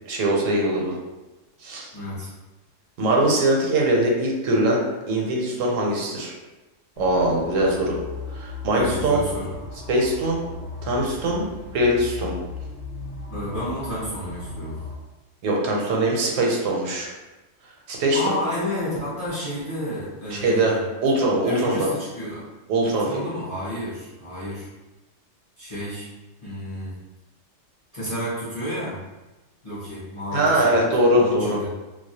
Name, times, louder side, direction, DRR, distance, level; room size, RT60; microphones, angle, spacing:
voice 1, 0.0-1.0 1.6-1.9 3.0-6.3 7.0-8.0 8.3-9.2 9.9-10.4 10.8-11.5 11.7-12.3 15.4-17.1 17.9-18.4 20.3-21.9 22.7-23.1 30.3-31.6, right 1 dB, 80° right, -2 dB, 1.0 m, -22 dB
voice 2, 1.9-2.3 8.7-9.5 13.3-14.8 18.1-20.8 21.4-22.4 22.9-24.7 25.6-26.1 26.4-27.0 27.9-29.0 29.6-30.8 31.1-31.7, equal, 35° left, -9 dB, 0.5 m, -31 dB
sound 1, 7.0-15.0, left 3 dB, 75° left, 0.9 m, -37 dB
2.3 x 2.1 x 2.7 m, 1.1 s
omnidirectional pair, 1.3 m